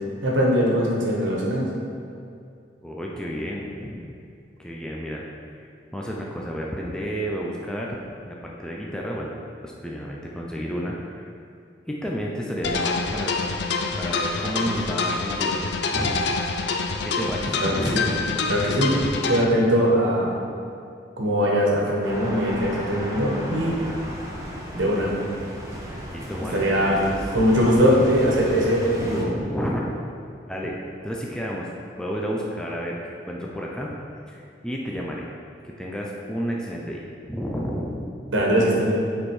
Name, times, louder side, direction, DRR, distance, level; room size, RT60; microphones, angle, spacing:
voice 1, 0.2-1.7 17.6-18.0 18.5-19.0 19.3-20.3 21.2-23.8 24.7-25.1 26.5-27.0 27.3-29.3 38.3-39.0, equal, 85° right, -3 dB, 1.5 m, -21 dB
voice 2, 2.8-4.1 4.6-5.2 5.6-8.0 8.2-9.4 9.6-11.3 11.9-13.3 14.0-15.6 15.9-16.5 17.0-18.2 26.1-27.2 29.0-29.9 30.5-30.8 31.0-31.7 32.0-33.0 33.3-34.0 34.3-35.3 35.6-38.1, equal, 5° left, -3 dB, 0.5 m, -31 dB
sound 1, 12.6-19.4, left 4 dB, 65° left, 0.5 m, -26 dB
sound 2, 22.0-29.2, equal, 15° right, 0.9 m, -35 dB
7.3 x 4.4 x 4.8 m, 2.4 s
head